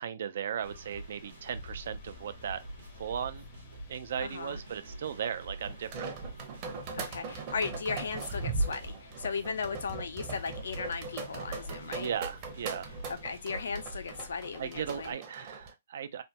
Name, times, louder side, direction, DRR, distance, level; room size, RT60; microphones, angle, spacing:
voice 1, 0.0-2.6 3.0-3.5 3.9-6.1 11.8-12.9 14.6-16.2, right 8 dB, 60° right, 0.4 m, -37 dB
sound 1, 0.6-15.1, left 4 dB, 45° left, 0.8 m, -53 dB
sound 2, 0.6-14.1, right 2 dB, 85° right, 1.0 m, -47 dB
voice 2, 4.2-4.6 6.9-12.1 13.1-15.2, left 5 dB, 80° left, 0.6 m, -36 dB
sound 3, 5.6-15.7, right 3 dB, 30° right, 0.8 m, -39 dB
3.3 x 2.1 x 2.8 m
hypercardioid pair, 160°, 0 cm